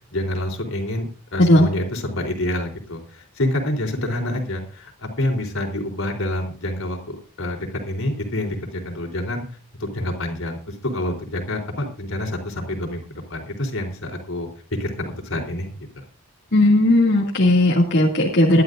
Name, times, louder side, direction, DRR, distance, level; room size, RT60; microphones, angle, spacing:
voice 1, 0.1-9.4 9.8-13.0 13.3-14.5 14.8-15.7, left 1 dB, 80° left, 2 dB, 3.9 m, -27 dB
voice 2, 16.5-18.6, left 1 dB, 55° left, -3 dB, 2.5 m, -16 dB
20.5 x 12.0 x 2.6 m, 0.38 s
head